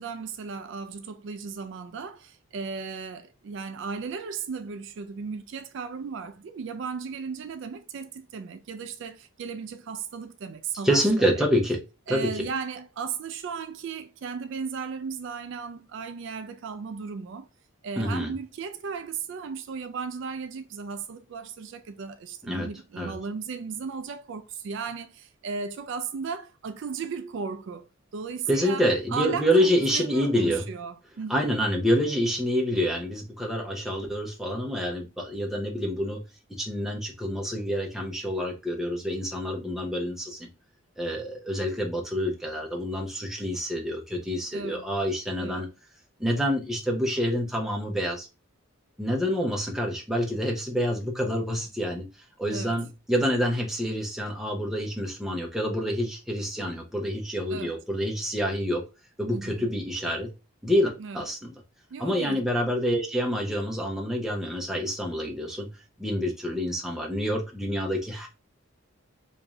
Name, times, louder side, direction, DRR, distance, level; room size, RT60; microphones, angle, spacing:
voice 1, 0.0-11.4 12.1-17.5 17.8-27.8 28.1-31.5 44.5-44.9 45.4-45.7 52.5-52.8 57.5-57.8 59.3-59.7 61.0-61.2 61.9-62.4, right 5 dB, 60° right, 0.3 m, -36 dB
voice 2, 10.8-11.8 12.1-12.4 18.0-18.3 22.5-22.7 23.0-23.1 28.5-30.7 31.3-36.2 36.6-40.5 41.0-45.7 46.2-48.3 49.0-52.1 52.4-58.8 59.2-60.3 60.6-61.5 62.0-65.7 66.0-68.3, equal, ahead, 0.7 m, -27 dB
3.1 x 2.7 x 3.5 m
head